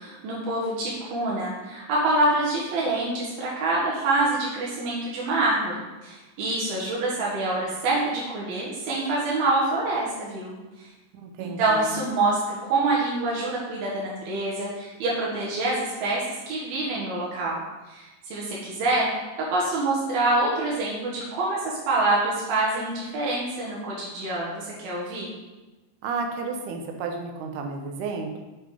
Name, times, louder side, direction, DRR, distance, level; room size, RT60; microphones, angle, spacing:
voice 1, 0.0-10.9 11.4-19.1 19.4-25.3, right 2 dB, 85° right, -5 dB, 3.4 m, -26 dB
voice 2, 11.1-11.9 26.0-28.4, right 4 dB, 70° right, 3 dB, 2.2 m, -32 dB
7.4 x 6.0 x 4.9 m, 1.1 s
omnidirectional pair, 4.2 m